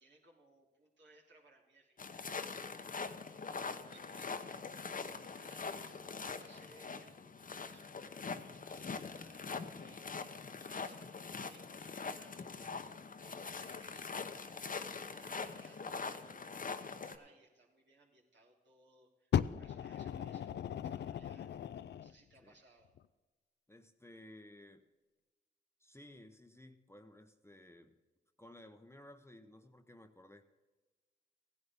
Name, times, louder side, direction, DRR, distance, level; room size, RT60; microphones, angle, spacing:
voice 1, 0.0-4.8 5.2-8.3 8.5-11.1 11.5-12.9 13.2-21.5 22.0-22.9, right 2 dB, 65° right, -3 dB, 3.2 m, -65 dB
sound 1, 2.0-17.2, left 4 dB, 45° left, 0.9 m, -43 dB
Fire, 19.3-22.1 23.0-23.1, left 9 dB, 60° left, 0.4 m, -37 dB
voice 2, 23.7-24.8 25.8-28.0 28.4-30.4, left 1 dB, 15° left, 7 dB, 0.9 m, -56 dB
16.0 x 10.5 x 3.6 m, 1.2 s
cardioid pair, 50°, 20 cm